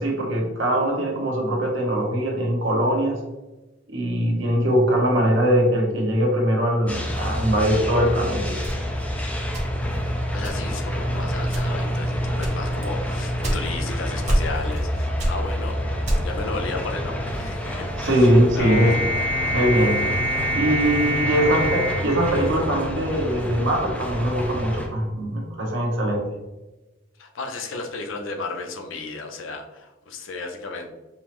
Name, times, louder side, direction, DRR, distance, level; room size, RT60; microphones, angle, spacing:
voice 1, 0.0-3.2 3.9-8.6 18.0-18.9 19.5-20.0 20.5-26.2, equal, 75° right, -1 dB, 1.0 m, -21 dB
sound 1, 6.9-24.9, equal, 5° left, 0.4 m, -28 dB
sound 2, 8.6-10.0 10.4-10.9 11.4-11.9 12.4-13.9 14.3-14.9 15.2-16.5, right 1 dB, 40° right, 0.8 m, -26 dB
voice 2, 10.3-15.8 16.2-18.3 18.5-19.0 21.4-21.6 27.2-30.9, left 3 dB, 85° left, 4 dB, 0.6 m, -34 dB
sound 3, 18.6-23.1, equal, 60° left, 1.0 m, -26 dB
5.4 x 2.0 x 3.0 m, 1.1 s
head